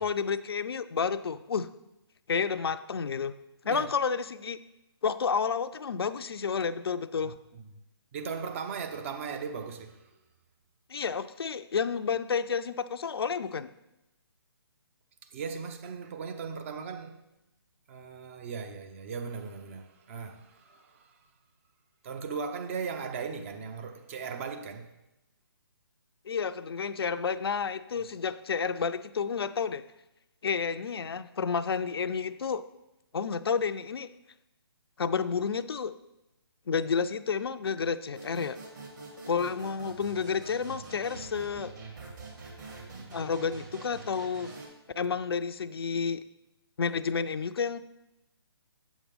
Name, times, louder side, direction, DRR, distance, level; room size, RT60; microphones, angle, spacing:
voice 1, 0.0-1.7 2.3-3.3 3.6-4.6 5.0-7.3 10.9-13.7 26.3-29.8 30.4-32.6 33.1-34.1 35.0-35.9 36.7-38.6 39.3-41.7 43.1-44.5 45.0-46.2 46.8-47.8, left 6 dB, 70° left, 0.4 m, -30 dB
voice 2, 7.2-7.6 8.1-10.2 15.3-17.2 17.9-21.2 22.0-24.9, right 5 dB, 30° right, 0.6 m, -38 dB
sound 1, 38.1-44.7, right 3 dB, 45° right, 2.2 m, -45 dB
8.1 x 7.2 x 3.5 m
figure-of-eight pair, 145°, 13 cm